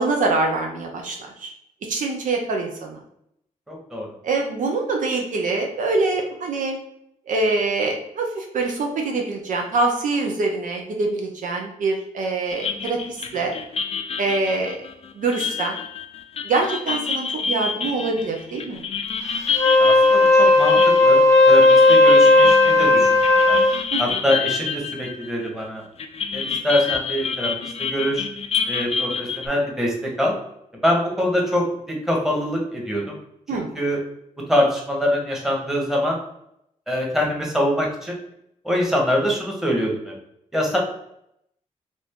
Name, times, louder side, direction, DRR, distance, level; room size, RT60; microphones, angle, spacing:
voice 1, 0.0-1.5 1.9-3.0 4.2-6.8 7.3-13.5 14.2-14.9 15.2-15.8 16.4-18.8 23.9-24.0 33.5-33.7, right 3 dB, 70° right, 2 dB, 0.6 m, -24 dB
voice 2, 3.7-4.1 19.8-21.2 21.5-23.1 23.5-23.6 24.0-25.8 26.3-27.5 27.8-28.2 28.6-30.3 30.8-33.2 33.5-34.0 34.5-36.2 36.9-38.2 38.6-40.1 40.5-40.8, equal, 5° right, -1 dB, 1.1 m, -24 dB
sound 1, 12.5-25.7 26.0-29.5, left 6 dB, 50° left, 0.4 m, -29 dB
Wind instrument woodwind instrument, 19.5-23.8, left 2 dB, 20° left, 0.7 m, -14 dB
2.6 x 2.5 x 3.5 m, 0.76 s
cardioid pair, 60°, 14 cm